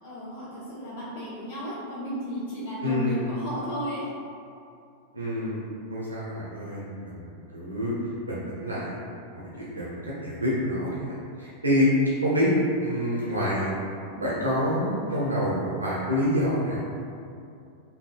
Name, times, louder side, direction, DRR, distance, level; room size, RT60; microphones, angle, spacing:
voice 1, 0.0-4.1 12.1-12.3, equal, 60° left, -9 dB, 1.1 m, -34 dB
voice 2, 2.8-3.3 5.1-7.9 8.3-8.9 9.3-11.9 12.2-12.5 12.8-13.7 14.0-16.8, equal, 80° right, -7 dB, 0.6 m, -27 dB
3.4 x 2.6 x 2.4 m, 2.5 s
figure-of-eight pair, 90°, 0 cm